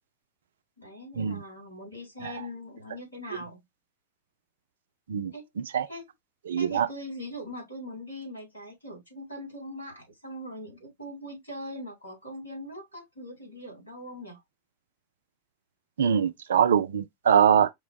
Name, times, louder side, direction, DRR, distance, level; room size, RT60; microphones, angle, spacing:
voice 1, 0.8-3.6 5.3-5.5 5.9-6.1 6.6-14.4, left 1 dB, 85° left, 2.6 m, -41 dB
voice 2, 5.1-5.9 6.5-6.9 16.0-17.7, right 8 dB, 65° right, 0.4 m, -23 dB
5.1 x 2.0 x 3.3 m
figure-of-eight pair, 90°, 0 cm